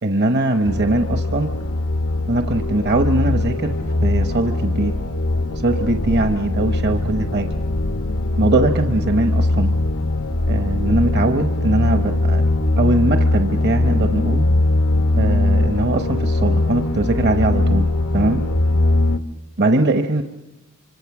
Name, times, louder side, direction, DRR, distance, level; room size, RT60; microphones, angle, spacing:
voice 1, 0.0-1.5 2.3-3.7 4.0-4.9 5.5-7.5 8.4-9.8 10.5-12.4 12.8-14.4 15.1-17.9 18.1-18.4 19.6-20.2, right 2 dB, 55° right, 6 dB, 1.0 m, -21 dB
sound 1, 0.6-19.2, left 2 dB, 80° left, 1.0 m, -20 dB
26.0 x 25.5 x 6.1 m, 0.98 s
head